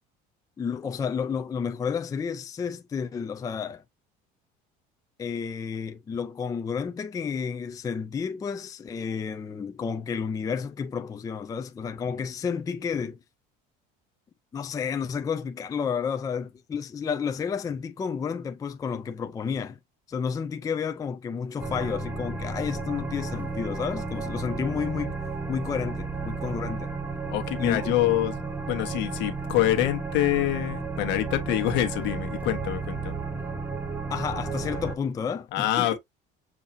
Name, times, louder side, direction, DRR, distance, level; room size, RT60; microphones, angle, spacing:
voice 1, 0.6-3.8 5.2-13.2 14.5-19.8 20.1-25.2 25.5-26.9 27.6-27.9 34.1-35.9, left 6 dB, 20° left, 0.4 m, -31 dB
sound 1, 21.6-35.0, right 4 dB, 10° right, 0.8 m, -33 dB
voice 2, 27.3-28.3 28.7-33.1 35.5-36.0, left 14 dB, 70° left, 1.2 m, -26 dB
7.1 x 2.7 x 2.6 m
cardioid pair, 130°, 19 cm